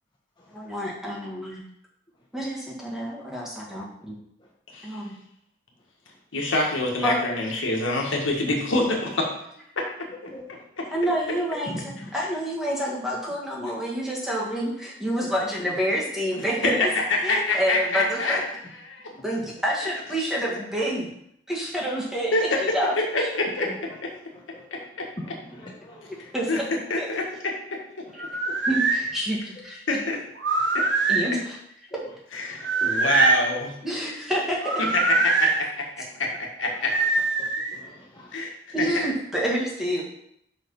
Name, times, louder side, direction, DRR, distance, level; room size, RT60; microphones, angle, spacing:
voice 1, 0.5-1.6 2.3-4.1 4.8-5.1 7.0-7.2 10.9-11.7 12.1-16.9 17.2-18.4 19.2-21.1 21.5-23.3 26.3-26.6 27.0-27.1 28.1-28.2 28.7-29.8 31.1-31.6 33.8-34.7 38.7-40.0, equal, ahead, -4 dB, 1.6 m, -28 dB
voice 2, 6.3-9.3 12.2-12.3 16.4-18.4 18.9-19.0 22.3-22.6 23.1-23.9 26.5-26.6 26.9-27.2 29.9-30.2 30.7-30.8 32.3-33.7 34.8-36.3 36.6-36.9 38.3-38.9, left 2 dB, 80° left, 0 dB, 1.5 m, -25 dB
voice 3, 10.3-10.6 11.7-12.1 19.1-19.2 23.6-23.7 24.5-24.9 25.2-26.3 32.5-32.7 37.4-38.4, equal, 25° left, -4 dB, 1.0 m, -41 dB
sound 1, 28.2-29.0 30.4-31.3 32.6-33.5 34.6-35.6 36.9-37.8, right 4 dB, 65° right, 1.0 m, -23 dB
5.9 x 4.9 x 5.3 m, 0.73 s
head